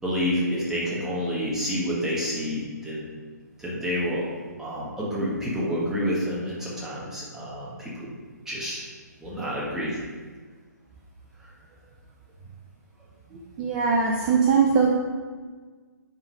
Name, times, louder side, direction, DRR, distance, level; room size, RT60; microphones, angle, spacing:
voice 1, 0.0-3.1 3.6-4.2 4.6-8.1 8.4-8.9 9.2-10.0, equal, 5° right, -7 dB, 1.6 m, -28 dB
voice 2, 13.3-14.9, right 5 dB, 25° right, 0 dB, 0.6 m, -21 dB
9.7 x 3.9 x 5.0 m, 1.5 s
figure-of-eight pair, 130°, 10 cm